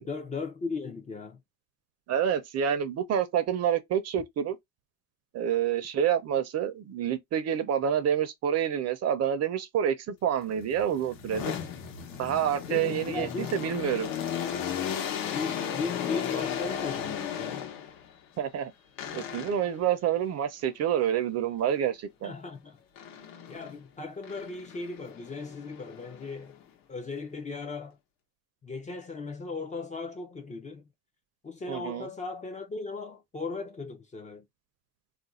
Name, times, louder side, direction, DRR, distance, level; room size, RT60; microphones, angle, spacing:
voice 1, 0.0-1.4 12.7-13.5 15.3-17.7 22.2-22.8 23.5-26.6 26.9-28.0 28.6-30.8 31.4-34.5, left 4 dB, 20° left, 0.4 m, -37 dB
voice 2, 2.1-4.6 5.3-11.5 12.2-14.1 18.4-18.7 19.1-22.3 31.7-32.1, right 9 dB, 45° right, 0.5 m, -28 dB
sound 1, 10.5-18.1 19.0-19.8 23.0-23.8 24.2-26.6, left 8 dB, 65° left, 0.9 m, -35 dB
2.5 x 2.2 x 4.0 m
cardioid pair, 150°, 36 cm